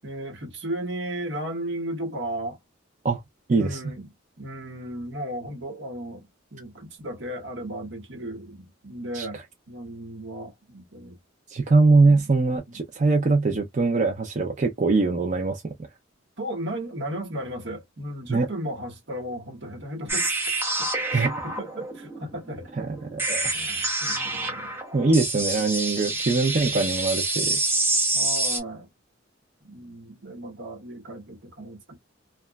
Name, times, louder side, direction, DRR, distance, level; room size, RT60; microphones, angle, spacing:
voice 1, 0.0-2.6 3.5-4.1 4.4-9.4 9.7-11.1 12.7-12.8 16.4-20.4 20.8-25.7 28.1-28.9 29.6-32.0, right 1 dB, 65° right, 1.1 m, -35 dB
voice 2, 3.5-3.8 9.1-9.4 11.5-15.6 18.3-18.5 21.1-21.3 22.8-23.5 24.9-27.6, right 3 dB, 40° right, 0.5 m, -22 dB
sound 1, 20.1-28.6, right 2 dB, 10° right, 0.9 m, -27 dB
2.9 x 2.3 x 2.2 m
head